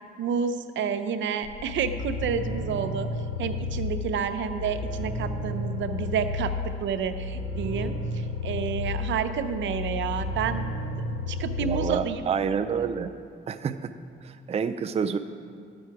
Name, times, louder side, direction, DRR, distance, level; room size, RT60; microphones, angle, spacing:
voice 1, 0.2-3.1 3.4-6.5 6.8-7.9 8.4-10.6 11.3-12.2, right 7 dB, 70° right, 9 dB, 0.7 m, -29 dB
sound 1, 1.4-12.1, left 3 dB, 60° left, 1.5 m, -32 dB
voice 2, 11.6-13.1 13.5-13.9 14.2-15.2, right 6 dB, 30° right, 9 dB, 0.5 m, -28 dB
12.5 x 8.8 x 4.7 m, 2.2 s
cardioid pair, 90°, 20 cm